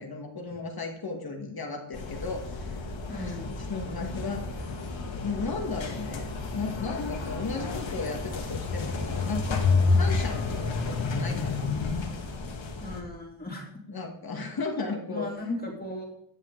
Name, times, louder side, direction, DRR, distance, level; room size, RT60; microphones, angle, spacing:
voice 1, 0.0-2.8 3.1-3.4 3.7-4.4 5.2-11.8 13.9-15.3, left 4 dB, 45° left, 2 dB, 1.8 m, -35 dB
sound 1, 1.9-13.0, left 4 dB, 65° left, 2.2 m, -30 dB
voice 2, 3.1-3.5 12.8-13.7 15.1-16.1, left 2 dB, 20° left, -1 dB, 2.9 m, -36 dB
15.5 x 9.1 x 3.9 m, 0.71 s
wide cardioid pair, 120°, 49 cm